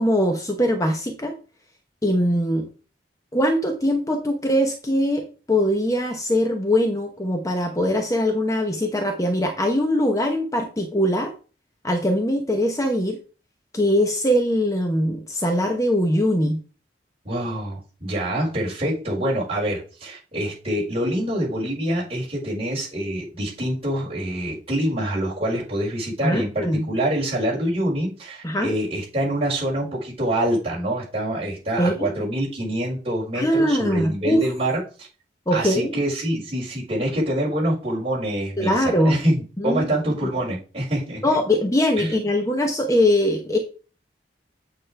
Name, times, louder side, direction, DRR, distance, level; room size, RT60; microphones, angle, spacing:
voice 1, 0.0-1.4 2.0-2.7 3.3-11.3 11.8-13.2 13.7-16.6 26.2-26.9 28.4-28.7 31.8-32.1 33.3-34.4 35.5-36.0 38.6-39.2 39.6-39.9 41.2-43.6, equal, 20° left, 4 dB, 0.9 m, -21 dB
voice 2, 17.2-35.1 35.5-41.2 42.0-42.1, right 1 dB, 35° right, -5 dB, 5.2 m, -26 dB
8.8 x 6.4 x 3.3 m, 0.35 s
head